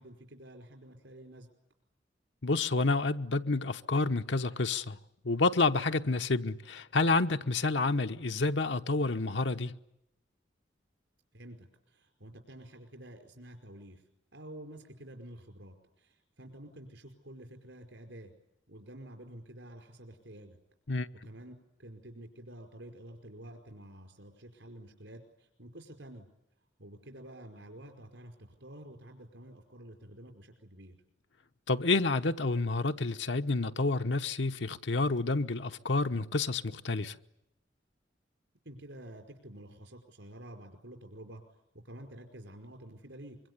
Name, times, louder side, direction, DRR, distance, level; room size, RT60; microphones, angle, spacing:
voice 1, 0.0-1.5 11.3-14.0 14.3-18.3 18.7-20.6 21.2-26.3 26.8-31.0 38.6-43.4, right 1 dB, 80° right, 5.0 m, -49 dB
voice 2, 2.4-5.0 5.2-9.8 20.9-21.1 31.7-37.2, left 3 dB, 75° left, 1.0 m, -29 dB
25.0 x 23.5 x 9.7 m
head